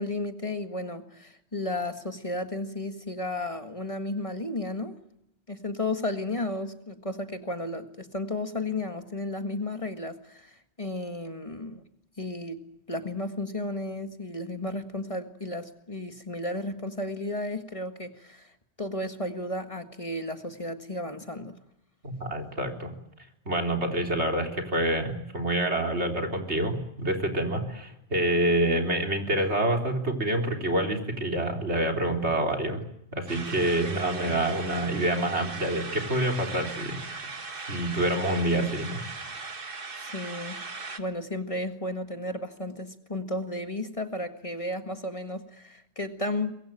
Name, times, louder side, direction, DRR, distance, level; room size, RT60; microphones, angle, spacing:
voice 1, 0.0-5.0 5.5-11.8 12.2-18.5 18.8-21.6 33.8-34.0 40.0-46.5, left 2 dB, 30° left, 7 dB, 1.8 m, -33 dB
voice 2, 22.0-22.9 23.5-32.8 33.1-37.3 37.7-39.0, right 1 dB, 80° right, 3 dB, 4.1 m, -27 dB
sound 1, 33.3-41.0, right 4 dB, 55° right, 1.9 m, -38 dB
24.5 x 22.0 x 9.0 m, 0.77 s
omnidirectional pair, 1.1 m